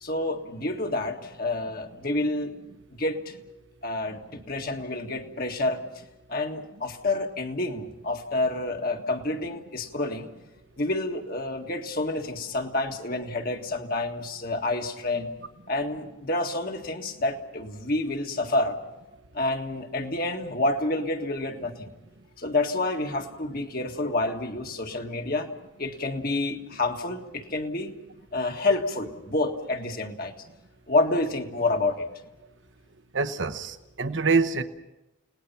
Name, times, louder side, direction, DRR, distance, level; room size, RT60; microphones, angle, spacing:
voice 1, 0.0-2.6 2.9-3.4 3.8-5.8 6.3-10.3 10.8-15.3 15.7-18.8 19.3-21.9 22.4-25.5 25.8-27.9 28.3-30.3 30.9-32.1, left 2 dB, 50° left, 4 dB, 1.8 m, -28 dB
voice 2, 33.1-34.6, right 4 dB, 70° right, 9 dB, 1.0 m, -25 dB
30.0 x 18.5 x 5.8 m, 0.99 s
head